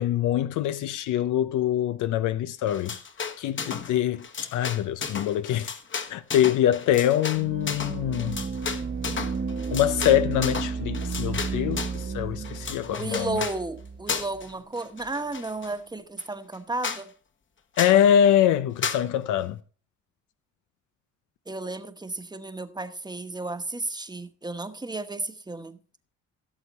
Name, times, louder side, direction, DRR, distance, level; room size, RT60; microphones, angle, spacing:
voice 1, 0.0-3.0 3.4-4.3 4.5-5.7 6.1-8.4 9.7-13.4 17.8-19.6, left 11 dB, 85° left, 0.6 m, -24 dB
sound 1, 2.7-3.9 4.2-12.0 12.4-13.6 14.1-14.5 14.8-15.7 16.2-16.3 16.5-16.6 16.8-17.0 17.8-18.0 18.8-19.0, left 5 dB, 40° left, 1.3 m, -34 dB
sound 2, 7.3-14.5, right 5 dB, 35° right, 0.9 m, -33 dB
voice 2, 12.9-17.1 21.5-25.8, right 2 dB, 15° right, 1.1 m, -33 dB
16.5 x 6.9 x 4.1 m
cardioid pair, 90°, 30 cm